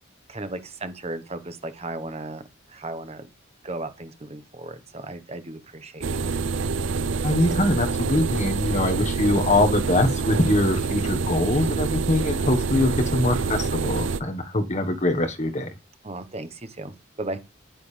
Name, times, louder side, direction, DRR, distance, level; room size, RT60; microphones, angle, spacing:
voice 1, 0.3-2.4 2.7-3.3 3.6-6.7 16.0-17.4, right 2 dB, 35° right, 1.2 m, -36 dB
sound 1, 6.0-14.2, right 4 dB, 80° right, 0.6 m, -26 dB
voice 2, 7.2-15.7, left 1 dB, 40° left, 1.4 m, -23 dB
9.5 x 9.0 x 3.4 m
head